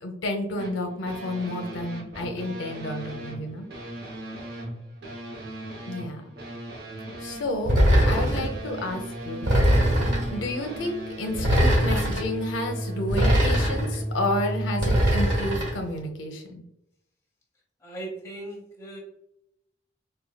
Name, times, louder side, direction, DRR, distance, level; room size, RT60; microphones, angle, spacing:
voice 1, 0.0-3.7 5.9-6.2 7.2-7.8 8.0-9.5 10.3-16.6, left 1 dB, 85° left, 4 dB, 0.6 m, -31 dB
sound 1, 0.6-15.5, right 1 dB, 55° right, 0.7 m, -36 dB
sound 2, 7.7-8.5 9.4-10.3 11.3-12.2 13.1-14.0 14.8-15.7, equal, 85° right, 1.3 m, -21 dB
voice 2, 17.8-19.0, right 2 dB, 15° left, -3 dB, 1.0 m, -39 dB
4.5 x 2.2 x 2.2 m, 0.78 s
head